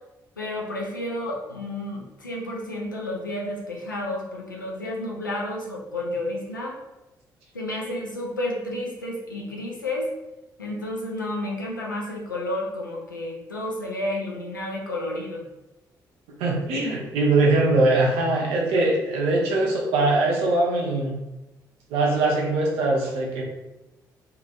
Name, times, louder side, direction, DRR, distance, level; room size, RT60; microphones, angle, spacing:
voice 1, 0.4-6.8 7.5-10.1 10.6-15.4, left 1 dB, 90° left, -2 dB, 0.4 m, -31 dB
voice 2, 16.4-21.2 21.9-23.4, right 2 dB, 65° right, -2 dB, 0.6 m, -22 dB
2.7 x 2.4 x 2.3 m, 0.97 s
figure-of-eight pair, 40°, 10 cm